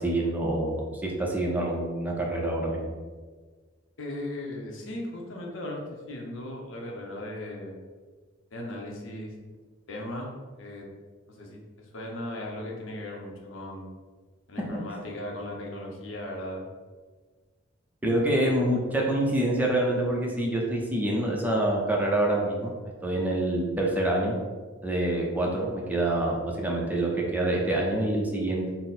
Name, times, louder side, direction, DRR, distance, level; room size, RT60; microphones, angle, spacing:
voice 1, 0.0-2.9 14.7-14.8 18.0-22.7 23.0-24.4 24.8-28.7, right 1 dB, 10° right, -2 dB, 0.5 m, -26 dB
voice 2, 4.0-7.7 8.5-9.3 9.9-10.3 10.6-10.9 11.3-13.9 14.5-16.7, left 1 dB, 75° left, 0 dB, 0.7 m, -37 dB
3.9 x 2.0 x 4.1 m, 1.4 s
head